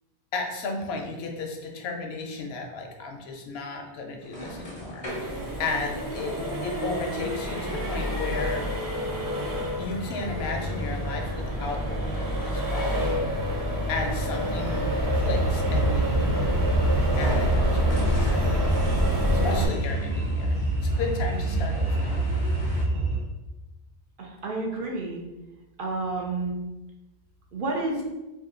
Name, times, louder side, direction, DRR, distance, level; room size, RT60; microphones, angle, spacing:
voice 1, 0.3-8.7 9.8-13.3 13.9-16.2 17.2-18.8 19.3-22.1, left 3 dB, 75° left, 2 dB, 0.8 m, -34 dB
sound 1, 4.2-22.8, equal, 35° left, 0.5 m, -42 dB
Accelerating revving vroom, 5.1-19.7, equal, 30° right, 0.4 m, -28 dB
sound 2, 14.8-23.2, right 1 dB, 85° right, 1.0 m, -26 dB
voice 2, 24.2-25.2 25.8-26.5 27.5-28.0, right 2 dB, 60° right, -1 dB, 0.7 m, -30 dB
2.7 x 2.4 x 3.6 m, 1.1 s
omnidirectional pair, 1.1 m